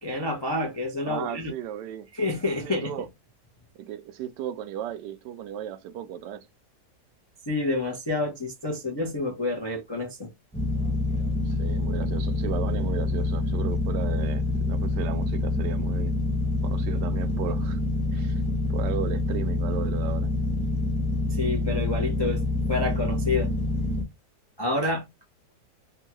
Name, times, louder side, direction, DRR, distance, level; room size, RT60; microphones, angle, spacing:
voice 1, 0.0-1.5 2.1-2.9 7.5-10.3 21.3-23.5 24.6-25.0, left 2 dB, 40° left, 0.3 m, -28 dB
voice 2, 1.1-2.1 2.6-3.1 3.8-6.5 11.4-16.1 16.6-17.8 18.1-20.3, right 10 dB, 80° right, 1.2 m, -35 dB
sound 1, 10.5-24.0, left 2 dB, 5° left, 0.8 m, -26 dB
3.6 x 2.3 x 2.9 m
omnidirectional pair, 1.8 m